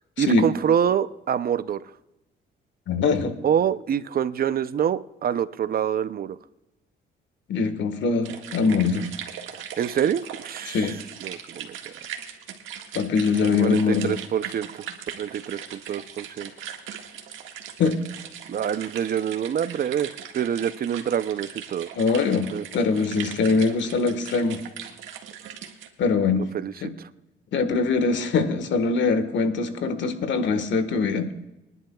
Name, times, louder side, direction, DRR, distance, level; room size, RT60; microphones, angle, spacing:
voice 1, 0.2-1.9 3.4-6.4 9.6-11.9 13.6-14.9 15.2-16.5 18.5-21.9 22.5-22.6 26.3-26.7 27.0-27.1, right 8 dB, 50° right, 15 dB, 0.6 m, -26 dB
voice 2, 2.9-3.3 7.5-9.1 10.7-11.0 12.9-14.2 17.8-18.0 22.0-24.6 26.0-26.5 26.8-26.9 27.5-31.3, left 4 dB, 70° left, 10 dB, 1.5 m, -23 dB
sound 1, 8.2-25.9, right 9 dB, 85° right, 1.7 m, -39 dB
25.0 x 11.0 x 2.3 m, 0.92 s
cardioid pair, 90°, 20 cm